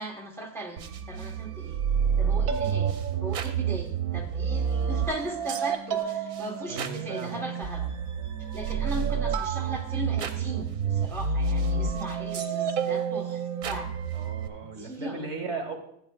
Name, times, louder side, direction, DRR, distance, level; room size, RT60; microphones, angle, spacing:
voice 1, 0.0-1.8 2.2-7.9 8.5-13.9 14.6-15.3, right 1 dB, ahead, 0 dB, 1.1 m, -38 dB
sound 1, 0.8-14.5, right 6 dB, 75° right, 1.2 m, -29 dB
voice 2, 6.7-7.4 14.1-15.8, right 4 dB, 55° right, 4 dB, 1.4 m, -36 dB
14.5 x 8.5 x 2.4 m, 0.74 s
omnidirectional pair, 1.5 m